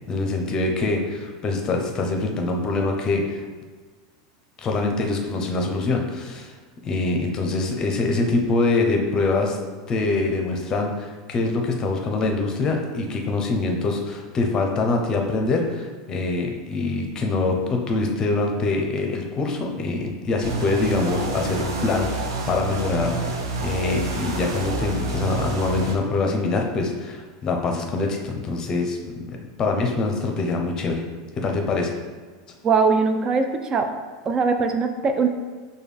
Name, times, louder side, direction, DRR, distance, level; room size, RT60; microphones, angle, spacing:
voice 1, 0.1-3.4 4.6-6.5 6.8-9.6 9.9-31.0 31.4-31.9, left 3 dB, 30° left, 2 dB, 0.7 m, -24 dB
sound 1, 20.4-25.9, right 3 dB, 85° right, 0.6 m, -28 dB
voice 2, 32.6-33.9 34.3-35.3, right 4 dB, 30° right, 6 dB, 0.4 m, -21 dB
5.1 x 2.3 x 3.3 m, 1.4 s
supercardioid pair, 110°, 2 cm